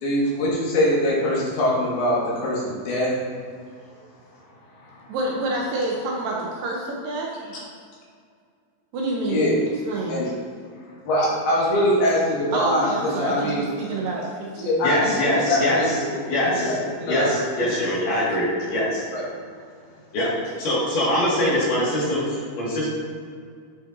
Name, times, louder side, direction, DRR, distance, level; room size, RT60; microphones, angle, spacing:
voice 1, 0.0-3.1 4.9-5.0 9.3-9.6 10.1-10.3 11.1-13.7 14.6-15.1 15.5-16.1 16.4-17.7 19.1-19.3, left 1 dB, 85° left, -6 dB, 3.7 m, -23 dB
voice 2, 5.1-7.5 8.9-9.6 9.9-10.2 12.5-14.8, right 2 dB, 75° right, -2 dB, 2.2 m, -28 dB
voice 3, 14.8-15.9 16.3-16.7 17.1-19.0 20.1-20.3 20.6-22.9, left 1 dB, 60° left, -7 dB, 3.3 m, -23 dB
10.0 x 5.5 x 2.6 m, 2.1 s
omnidirectional pair, 4.5 m